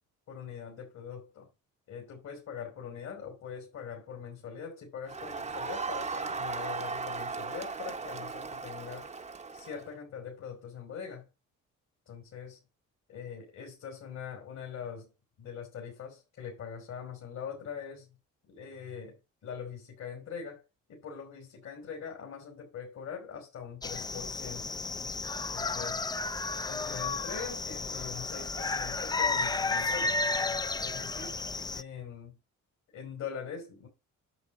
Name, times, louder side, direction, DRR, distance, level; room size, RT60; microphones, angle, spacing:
voice 1, 0.3-1.5 1.9-9.1 9.5-11.3 12.1-12.6 13.1-15.1 15.4-18.1 18.5-19.2 19.4-20.6 20.9-24.8 25.5-26.0 26.7-30.2 30.8-32.4 32.9-33.9, left 7 dB, 65° left, 2.9 m, -42 dB
Crowd, 5.1-9.9, right 4 dB, 25° right, 0.8 m, -37 dB
sound 1, 23.8-31.8, left 3 dB, 15° left, 0.4 m, -32 dB
8.2 x 6.2 x 5.4 m
cardioid pair, 90°, 30 cm